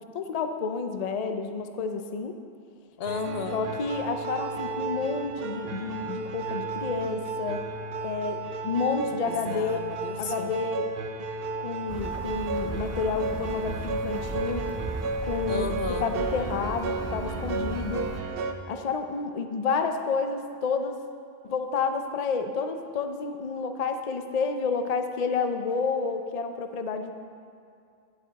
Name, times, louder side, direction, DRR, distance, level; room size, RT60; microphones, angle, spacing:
voice 1, 0.1-2.4 3.5-7.6 8.0-9.8 10.2-10.9 11.6-14.7 15.3-15.7 16.0-18.1 18.7-21.0 21.4-27.1, left 4 dB, 45° left, 7 dB, 0.6 m, -30 dB
voice 2, 3.0-3.6 9.3-10.6 15.5-16.1, left 5 dB, 75° left, 6 dB, 1.0 m, -33 dB
sound 1, 3.1-18.5, right 4 dB, 70° right, 0.9 m, -34 dB
sound 2, 11.9-18.2, right 2 dB, 20° right, 0.6 m, -36 dB
13.0 x 9.8 x 4.1 m, 2.4 s
omnidirectional pair, 1.0 m